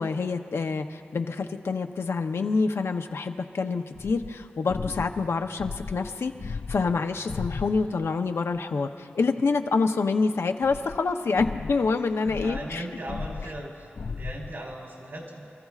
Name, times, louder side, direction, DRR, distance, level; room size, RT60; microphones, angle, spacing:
voice 1, 0.0-12.8, left 4 dB, 75° left, 5 dB, 0.7 m, -27 dB
sound 1, 4.0-8.1 10.6-14.8, left 4 dB, 50° left, 0.3 m, -37 dB
voice 2, 12.3-13.9 14.1-15.5, right 1 dB, 60° right, -2 dB, 3.6 m, -38 dB
29.0 x 14.5 x 2.4 m, 2.4 s
wide cardioid pair, 70°, 4 cm